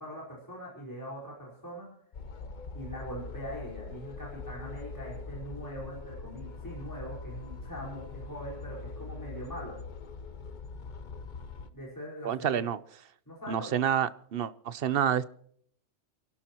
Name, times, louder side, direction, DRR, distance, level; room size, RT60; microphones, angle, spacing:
voice 1, 0.0-1.9 2.7-9.8 11.7-12.7 13.3-13.8, equal, 15° left, -4 dB, 4.7 m, -42 dB
sound 1, 2.1-11.7, left 4 dB, 45° left, 0.9 m, -42 dB
voice 2, 12.2-12.8 13.5-15.3, right 9 dB, 55° right, 16 dB, 0.8 m, -28 dB
29.5 x 11.5 x 3.0 m, 0.64 s
omnidirectional pair, 1.3 m